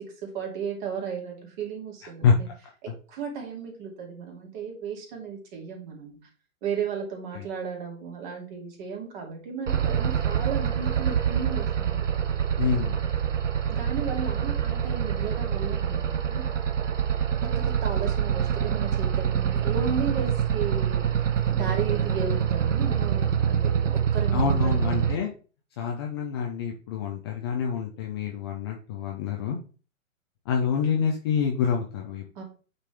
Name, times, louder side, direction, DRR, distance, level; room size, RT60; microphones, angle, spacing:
voice 1, 0.0-2.5 2.8-6.2 6.6-12.0 13.7-16.5 17.4-21.1 21.5-25.0 32.4-32.5, right 6 dB, 35° right, 1 dB, 2.6 m, -34 dB
sound 1, 9.7-25.1, right 8 dB, 60° right, 1.0 m, -26 dB
voice 2, 12.6-13.0 24.3-25.3 25.8-29.6 30.5-32.4, left 6 dB, 20° left, 0 dB, 0.6 m, -27 dB
8.5 x 4.1 x 3.3 m, 0.37 s
figure-of-eight pair, 125°, 41 cm